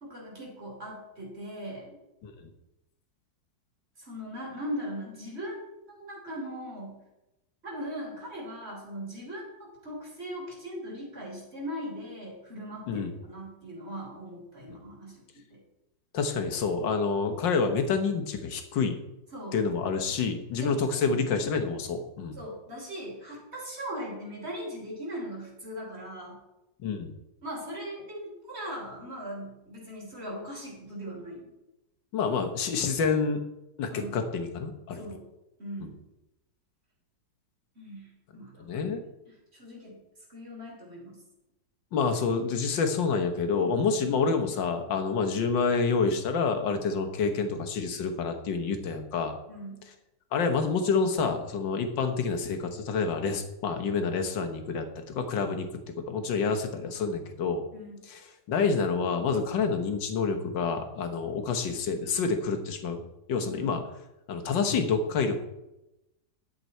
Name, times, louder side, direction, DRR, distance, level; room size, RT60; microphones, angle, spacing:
voice 1, 0.0-2.0 4.0-7.0 7.6-15.2 15.5-15.6 19.3-19.6 20.6-21.2 22.4-26.4 27.4-31.5 33.9-34.2 34.9-35.3 35.6-36.0 37.8-38.9 39.5-40.0 40.3-41.2 44.0-44.1 49.5-49.9 57.7-58.0 63.4-63.8, equal, 35° right, -2 dB, 3.4 m, -39 dB
voice 2, 16.1-19.0 19.5-22.4 26.8-27.1 32.1-33.4 33.8-35.0 35.8-35.9 38.6-39.0 41.9-49.3 50.3-55.7 56.1-57.6 58.0-58.2 58.5-63.0 63.3-63.8 64.3-65.5, left 5 dB, 80° left, 6 dB, 1.9 m, -28 dB
11.0 x 7.9 x 4.4 m, 0.92 s
omnidirectional pair, 2.0 m